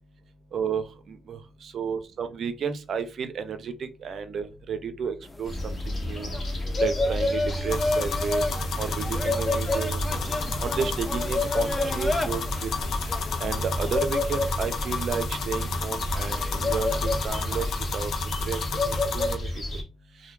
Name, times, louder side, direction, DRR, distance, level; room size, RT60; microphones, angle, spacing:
voice 1, 0.5-6.4 6.8-8.4 8.8-10.1 10.6-12.7 13.4-19.5, right 6 dB, 60° right, 10 dB, 0.4 m, -32 dB
sound 1, 5.2-17.7, left 1 dB, 10° left, 0.3 m, -35 dB
sound 2, 5.4-19.8, left 1 dB, 40° left, 1.0 m, -30 dB
sound 3, 7.7-19.3, left 5 dB, 70° left, 0.5 m, -32 dB
2.2 x 2.1 x 3.0 m, 0.29 s
cardioid pair, 90°, 0 cm